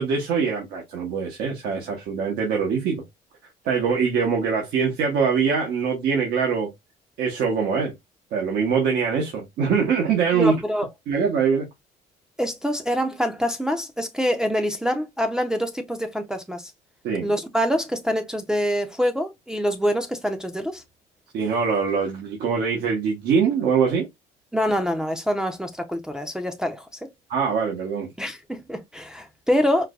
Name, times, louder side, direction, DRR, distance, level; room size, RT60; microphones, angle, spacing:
voice 1, 0.0-3.0 3.6-6.7 7.2-7.9 8.3-10.5 11.1-11.7 17.0-17.3 21.3-24.1 27.3-28.1, right 6 dB, 75° right, 1.1 m, -23 dB
voice 2, 10.3-10.9 12.4-16.7 17.2-20.8 24.5-26.9 28.2-29.9, equal, 5° right, 0.6 m, -25 dB
4.6 x 2.1 x 2.3 m
cardioid pair, 110°, 17 cm